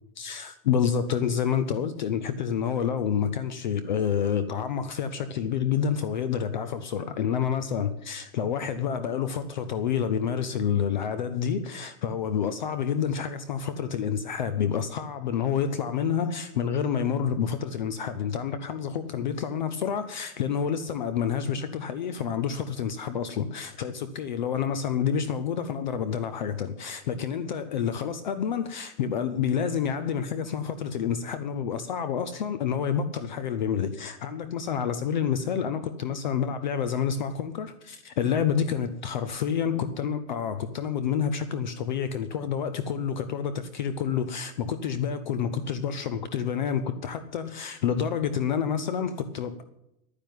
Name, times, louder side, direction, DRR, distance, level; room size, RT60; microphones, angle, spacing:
voice 1, 0.2-49.6, left 7 dB, 30° left, 0.5 m, -28 dB
11.0 x 9.8 x 9.2 m
supercardioid pair, 175°, 47 cm